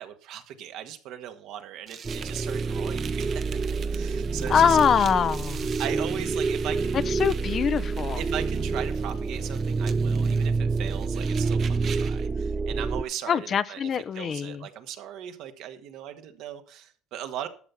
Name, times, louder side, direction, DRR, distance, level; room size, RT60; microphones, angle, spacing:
voice 1, 0.0-3.6 3.9-4.8 5.8-7.0 8.2-17.5, right 10 dB, 70° right, 1.6 m, -38 dB
sound 1, 1.9-12.3, right 8 dB, 45° right, 1.0 m, -44 dB
sound 2, 2.0-13.0, right 4 dB, 25° right, 0.5 m, -27 dB
voice 2, 4.5-5.7 7.2-8.2 13.3-14.6, left 7 dB, 40° left, 0.6 m, -23 dB
12.0 x 6.8 x 5.8 m
supercardioid pair, 105°, 0 cm